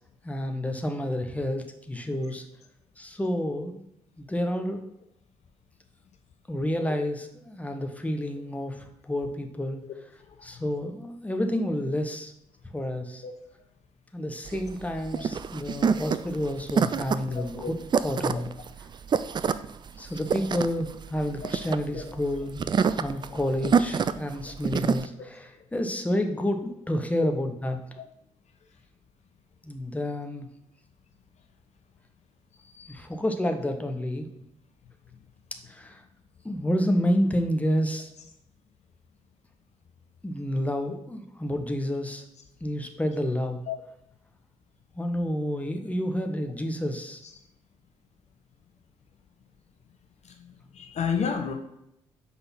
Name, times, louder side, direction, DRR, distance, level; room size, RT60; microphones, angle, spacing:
voice 1, 0.2-2.4 3.0-3.8 4.2-4.8 6.5-9.8 10.4-12.3 12.7-13.2 14.1-17.8 18.0-18.5 20.0-22.6 23.0-27.8 29.6-30.5 32.9-34.3 35.7-36.0 36.4-38.1 40.2-42.2 42.6-43.6 44.9-47.2, equal, 10° left, 5 dB, 1.0 m, -29 dB
voice 2, 10.2-10.7 13.2-13.3 14.5-14.6 15.1-15.2 15.9-16.2 17.3-17.7 18.3-18.4 19.9-20.2 21.4-21.5 21.9-22.0 23.3-23.7 25.2-25.3 25.5-25.7 27.2-27.3 28.6-28.8 32.5-33.0 35.1-35.2 43.7-43.8 47.2-47.3 50.2-51.5, left 6 dB, 45° left, 4 dB, 0.7 m, -34 dB
sound 1, 14.5-25.1, right 6 dB, 30° right, 0.4 m, -27 dB
5.5 x 4.0 x 5.7 m, 0.80 s
figure-of-eight pair, 40°, 15 cm